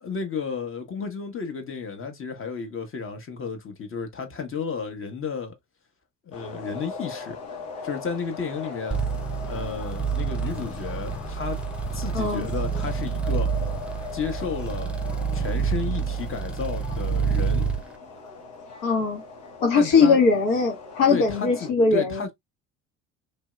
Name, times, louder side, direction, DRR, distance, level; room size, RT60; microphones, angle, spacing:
voice 1, 0.0-5.5 6.3-7.4 7.8-9.0 9.4-11.6 11.9-13.5 14.1-15.0 15.3-17.7 19.8-20.2 21.1-22.3, left 5 dB, 35° left, 1.1 m, -32 dB
sound 1, 6.3-21.7, left 4 dB, 90° left, 1.3 m, -40 dB
sound 2, 8.9-17.8, right 6 dB, 5° right, 0.7 m, -28 dB
voice 2, 12.1-12.5 18.8-19.2 19.6-22.2, left 4 dB, 70° left, 1.3 m, -20 dB
3.0 x 2.7 x 2.2 m
hypercardioid pair, 70°, 36 cm